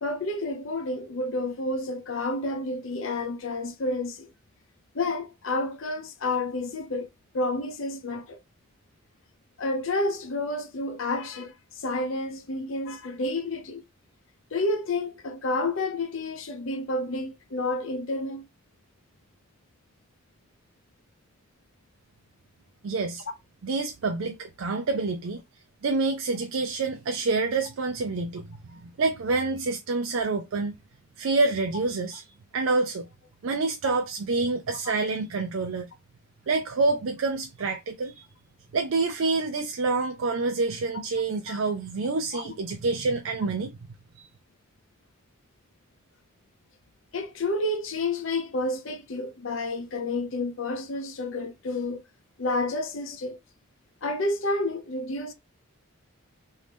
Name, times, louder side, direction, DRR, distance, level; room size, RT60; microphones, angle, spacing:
voice 1, 0.0-4.3 4.9-7.1 7.3-8.4 9.6-13.8 14.5-18.4 33.8-34.0 34.7-34.8 41.5-41.6 42.3-42.4 47.1-52.0 52.4-53.4 54.0-55.3, left 2 dB, 65° left, 0.7 m, -30 dB
voice 2, 22.8-23.2 23.6-25.4 25.8-30.7 31.2-32.2 32.5-33.1 33.4-35.9 36.5-38.3 38.7-43.8, right 3 dB, 70° right, 0.4 m, -27 dB
3.1 x 2.7 x 3.4 m
head